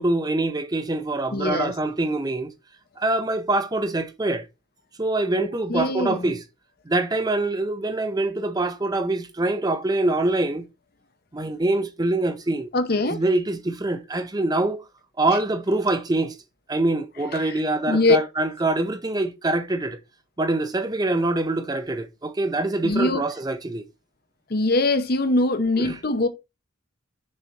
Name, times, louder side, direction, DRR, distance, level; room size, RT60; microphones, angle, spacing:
voice 1, 0.0-2.5 3.0-4.4 5.0-6.4 6.9-10.6 11.3-12.7 13.1-14.8 15.2-16.4 16.7-20.0 20.4-23.9 25.8-26.0, right 2 dB, 20° right, 0.5 m, -24 dB
voice 2, 1.3-1.7 5.4-6.3 12.7-13.2 17.3-17.5 17.9-18.2 22.8-23.2 24.5-26.3, left 2 dB, 45° left, 0.7 m, -22 dB
6.4 x 3.9 x 4.5 m
head